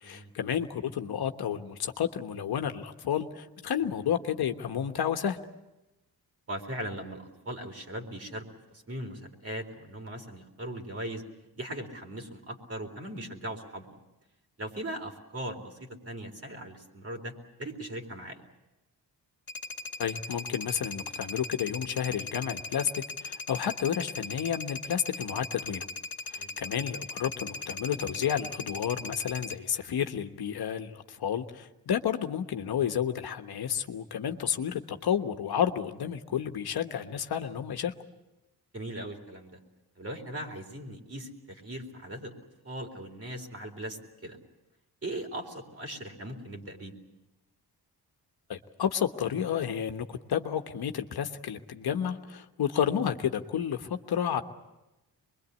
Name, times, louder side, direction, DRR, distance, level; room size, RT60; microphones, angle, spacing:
voice 1, 0.0-5.4 20.0-25.9 26.3-37.9 48.5-54.4, left 8 dB, 75° left, 6 dB, 1.3 m, -31 dB
voice 2, 6.5-8.4 8.7-11.2 11.6-13.9 14.6-17.3 17.6-18.4 26.4-26.5 38.7-39.6 40.0-42.3 42.6-44.4 45.0-46.9, right 1 dB, 35° right, 3 dB, 4.0 m, -39 dB
sound 1, 19.5-29.6, left 3 dB, 50° left, 1.9 m, -39 dB
24.5 x 22.5 x 8.3 m, 0.99 s
cardioid pair, 95°, 39 cm